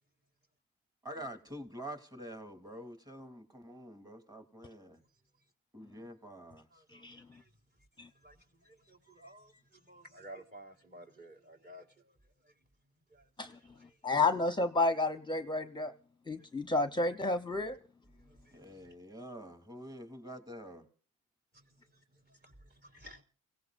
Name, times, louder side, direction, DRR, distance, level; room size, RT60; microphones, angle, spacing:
voice 1, 1.0-5.0 5.7-6.8 18.5-20.9, equal, 15° right, 3.1 m, -47 dB
voice 2, 6.7-7.6 8.0-12.7 13.1-14.2 16.4-16.5 18.1-18.9 21.5-23.2, right 1 dB, 35° right, 3.8 m, -56 dB
voice 3, 14.0-15.9 16.3-17.8, left 2 dB, 15° left, 0.9 m, -31 dB
29.0 x 17.5 x 2.6 m
cardioid pair, 90°, 30 cm